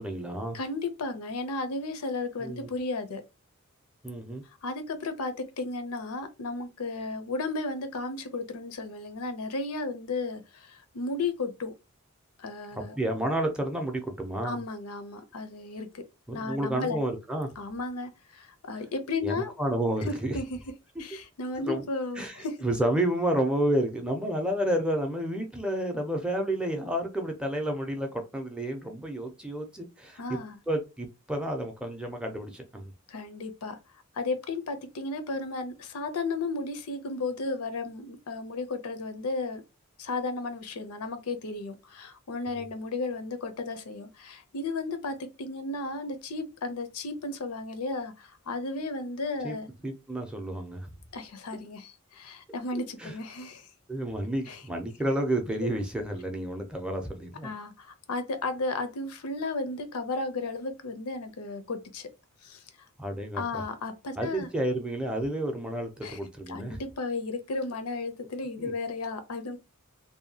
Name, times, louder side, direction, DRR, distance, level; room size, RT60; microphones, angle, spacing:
voice 1, 0.0-0.6 2.4-2.7 4.0-4.4 12.7-14.6 16.3-17.5 19.2-20.4 21.6-21.8 22.2-30.4 30.7-32.9 42.5-42.6 49.4-49.6 49.8-50.9 52.7-53.1 53.9-57.5 63.0-63.6 64.2-66.8 68.6-68.7, right 1 dB, 5° right, 0.5 m, -30 dB
voice 2, 0.5-3.2 4.6-11.7 12.4-13.0 14.4-16.0 16.3-17.0 17.6-19.5 20.0-20.6 21.0-22.6 30.2-30.6 33.1-33.8 34.1-39.6 40.0-49.7 51.1-53.7 54.5-54.6 55.6-55.7 57.4-62.1 62.4-62.6 63.3-64.5 66.0-66.2 66.5-69.6, left 3 dB, 85° left, 0.6 m, -34 dB
2.7 x 2.2 x 2.7 m
head